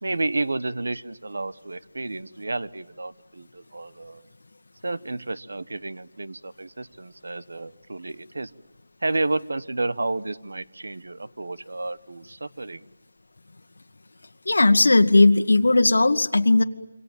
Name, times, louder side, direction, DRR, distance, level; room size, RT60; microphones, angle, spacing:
voice 1, 0.0-4.3 4.8-8.5 9.0-12.8, right 2 dB, 70° right, 15 dB, 1.1 m, -31 dB
voice 2, 14.5-16.6, left 2 dB, 70° left, 7 dB, 1.7 m, -17 dB
27.0 x 25.5 x 7.4 m, 0.97 s
figure-of-eight pair, 180°, 0 cm